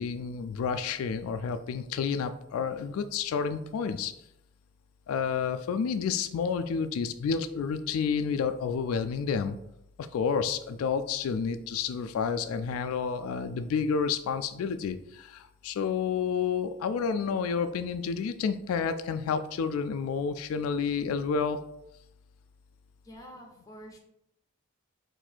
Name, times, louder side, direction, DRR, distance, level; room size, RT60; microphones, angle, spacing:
voice 1, 0.0-4.1 5.1-9.6 10.1-21.6, left 6 dB, 85° left, 10 dB, 0.3 m, -30 dB
voice 2, 16.7-17.1 23.0-24.0, equal, 15° left, 1 dB, 0.7 m, -49 dB
4.0 x 2.6 x 4.4 m, 0.81 s
head